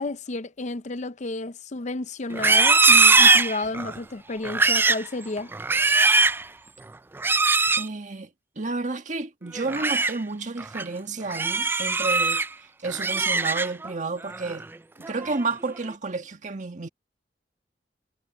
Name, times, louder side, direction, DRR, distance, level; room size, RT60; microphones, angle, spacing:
voice 1, 0.0-5.5, left 2 dB, 45° left, 0.6 m, -31 dB
Livestock farm animals working animals, 2.3-4.0 4.4-5.1 5.5-6.4 7.2-7.9 9.5-10.1 10.6-10.8 11.3-12.5 12.8-13.9 14.3-14.6 15.0-15.5, right 3 dB, 15° right, 0.3 m, -20 dB
voice 2, 7.7-8.3 8.5-12.4 12.8-14.7 15.0-16.9, right 3 dB, 45° right, 1.6 m, -31 dB
head